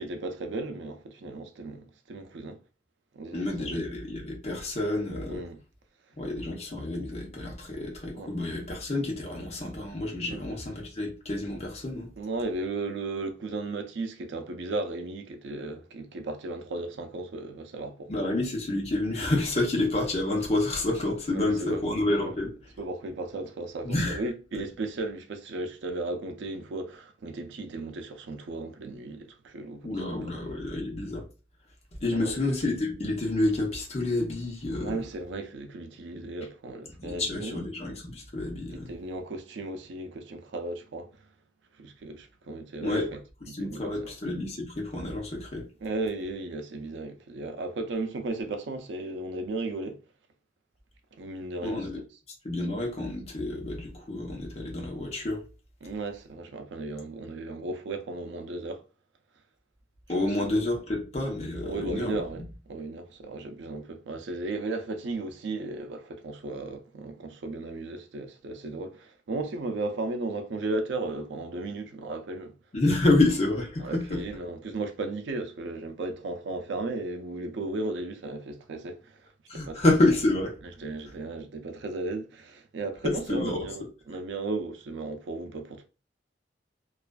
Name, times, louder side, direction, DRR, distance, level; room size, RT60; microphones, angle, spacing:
voice 1, 0.0-2.6 3.1-3.7 5.3-5.6 8.1-8.3 10.3-10.4 12.2-18.3 21.3-21.8 22.2-22.3 22.8-30.6 32.1-32.4 34.8-37.6 38.7-41.1 41.8-43.2 43.5-44.1 45.8-50.0 51.2-51.9 55.8-58.8 60.2-60.5 61.6-72.5 73.8-79.3 79.5-79.8 80.8-85.9, right 2 dB, 85° right, 0.4 m, -35 dB
voice 2, 3.3-5.4 6.2-12.1 18.1-22.5 23.8-24.2 29.8-31.3 32.0-35.0 37.0-38.9 42.8-43.1 43.5-45.7 51.6-52.0 52.4-55.4 60.1-62.2 72.7-74.2 79.5-80.5 83.0-83.7, left 2 dB, 40° left, 0.7 m, -28 dB
2.4 x 2.3 x 2.2 m
head